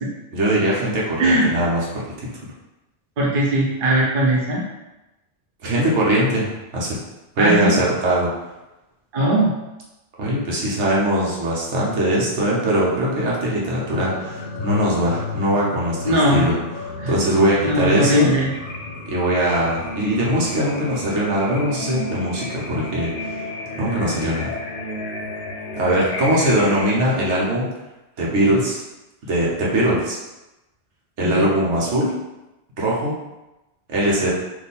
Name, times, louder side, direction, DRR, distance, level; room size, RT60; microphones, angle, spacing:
voice 1, 0.3-2.0 5.6-7.0 7.4-8.3 10.2-16.5 16.8-18.3 19.1-23.4 23.7-24.5 25.8-27.7 28.2-28.8 29.3-30.2 31.2-32.1 32.8-33.1 33.9-34.3, right 1 dB, 80° right, -5 dB, 1.3 m, -21 dB
voice 2, 1.2-1.5 3.2-4.6 7.4-7.7 9.1-9.5 16.0-16.5 17.0-17.2 17.6-18.5 31.2-31.5, equal, 50° right, -4 dB, 1.0 m, -19 dB
sound 1, 13.9-26.8, left 2 dB, 55° left, 0.7 m, -32 dB
3.6 x 2.7 x 4.1 m, 1.0 s
omnidirectional pair, 1.2 m